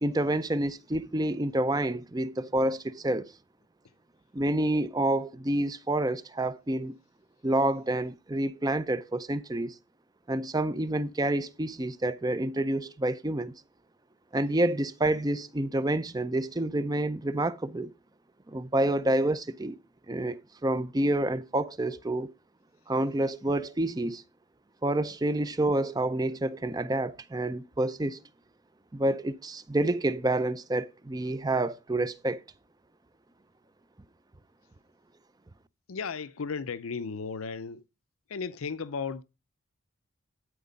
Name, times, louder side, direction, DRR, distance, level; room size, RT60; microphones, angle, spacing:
voice 1, 0.0-3.3 4.3-6.9 7.4-9.8 10.3-13.5 14.3-17.9 18.5-19.8 20.1-22.3 22.9-24.2 24.8-28.2 28.9-32.4, right 1 dB, 20° right, 0.5 m, -28 dB
voice 2, 35.9-37.8 38.3-39.2, left 5 dB, 85° left, 0.6 m, -35 dB
12.5 x 4.6 x 5.2 m
head